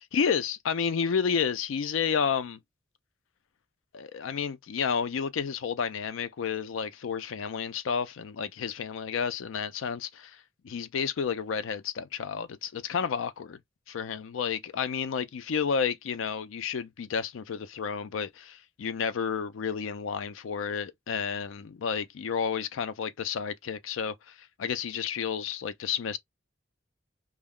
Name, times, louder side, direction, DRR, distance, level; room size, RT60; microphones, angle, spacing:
voice 1, 0.1-2.6 3.9-10.4 10.6-13.6 13.9-26.2, left 6 dB, 80° left, 0.4 m, -31 dB
2.3 x 2.0 x 3.5 m
head